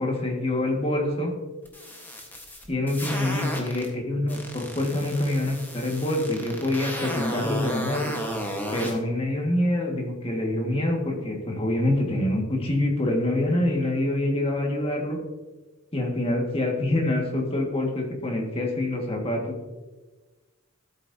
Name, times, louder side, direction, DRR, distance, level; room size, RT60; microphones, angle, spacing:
voice 1, 0.0-1.3 2.7-8.1 8.7-15.2 15.9-19.6, left 1 dB, 30° left, 0 dB, 1.8 m, -26 dB
sound 1, 1.7-3.9 4.3-8.9, equal, 10° left, 1.3 m, -33 dB
14.0 x 8.2 x 2.8 m, 1.2 s
head